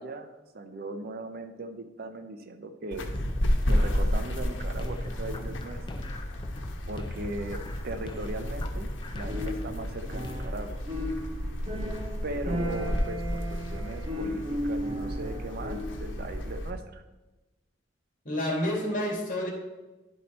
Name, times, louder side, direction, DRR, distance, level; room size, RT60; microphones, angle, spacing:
voice 1, 0.0-3.1 3.7-6.0 6.9-10.8 12.2-17.0, right 2 dB, 55° right, 8 dB, 0.6 m, -38 dB
sound 1, 2.9-16.7, equal, 75° left, 1.1 m, -32 dB
sound 2, 2.9-10.6, left 1 dB, 25° left, 0.5 m, -43 dB
sound 3, 9.3-10.6 10.9-16.2, equal, 30° right, 1.1 m, -35 dB
voice 2, 18.2-19.5, left 1 dB, 45° left, 0 dB, 2.1 m, -29 dB
11.0 x 4.3 x 4.2 m, 1.1 s
head